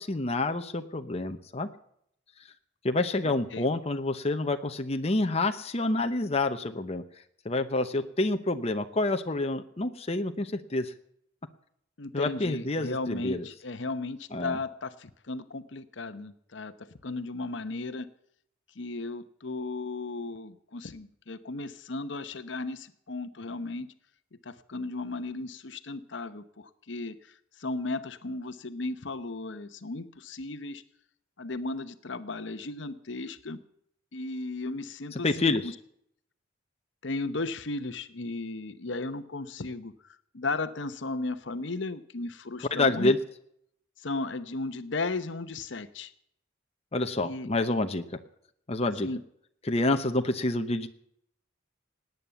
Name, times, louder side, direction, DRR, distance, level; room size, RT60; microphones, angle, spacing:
voice 1, 0.0-1.7 2.8-7.0 7.4-10.9 12.1-13.5 14.3-14.6 35.1-35.7 42.7-43.2 46.9-48.0 48.7-49.1 49.6-50.9, left 2 dB, 30° left, 7 dB, 0.9 m, -28 dB
voice 2, 12.0-16.7 17.0-18.1 18.8-23.9 24.4-27.1 27.6-30.8 31.4-33.6 34.1-35.7 37.0-39.9 40.3-43.1 44.0-46.1 47.2-47.5 49.0-49.2, left 3 dB, 65° left, 12 dB, 0.9 m, -35 dB
18.5 x 9.3 x 6.9 m, 0.70 s
head